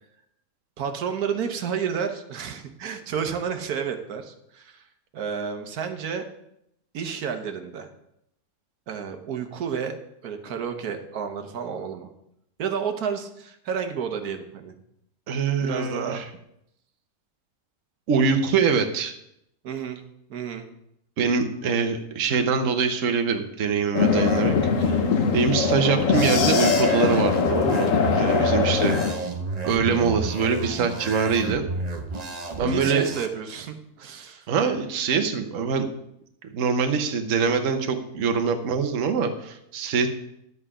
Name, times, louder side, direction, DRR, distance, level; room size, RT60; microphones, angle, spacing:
voice 1, 0.8-4.9 5.1-6.2 6.9-7.9 8.9-10.0 10.2-12.1 12.6-14.8 15.6-16.2 19.6-20.0 20.3-20.7 28.3-28.6 32.6-34.5, right 7 dB, 90° right, 6 dB, 1.5 m, -31 dB
voice 2, 15.3-16.2 18.1-19.1 21.2-25.0 25.3-27.9 28.1-29.0 29.6-31.6 32.6-33.1 34.5-35.9 36.4-40.1, right 5 dB, 60° right, 6 dB, 1.3 m, -24 dB
sound 1, 23.9-29.1, left 5 dB, 65° left, 1.3 m, -22 dB
sound 2, 26.4-33.3, right 3 dB, 30° right, 0.9 m, -32 dB
11.0 x 8.0 x 4.9 m, 0.77 s
omnidirectional pair, 1.6 m